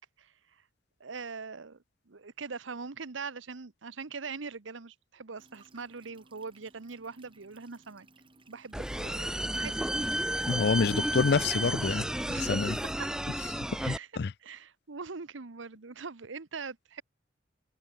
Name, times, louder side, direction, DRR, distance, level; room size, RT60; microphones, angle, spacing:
voice 1, 1.0-8.1 8.5-10.1 12.3-12.6 13.0-13.4 13.8-14.1 14.4-17.0, right 5 dB, 85° right, 1.0 m, -42 dB
sound 1, 5.4-12.0, right 2 dB, 30° right, 4.2 m, -61 dB
sound 2, 8.7-14.0, right 1 dB, 5° right, 0.6 m, -32 dB
voice 2, 10.5-12.1 12.4-12.8 13.9-14.3, left 5 dB, 60° left, 0.5 m, -27 dB
head